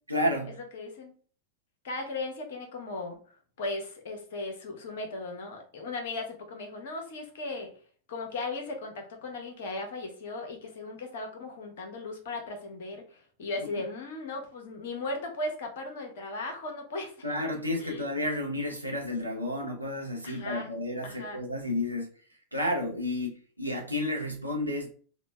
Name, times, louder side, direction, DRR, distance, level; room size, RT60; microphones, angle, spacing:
voice 1, 0.1-0.6 17.2-22.1 22.5-24.9, left 1 dB, 85° right, -1 dB, 0.7 m, -31 dB
voice 2, 0.7-1.1 1.8-7.7 8.1-17.3 17.8-18.1 20.2-20.7 21.0-21.4, left 2 dB, 55° left, 4 dB, 0.8 m, -37 dB
3.0 x 2.1 x 3.1 m, 0.43 s
figure-of-eight pair, 90°, 0 cm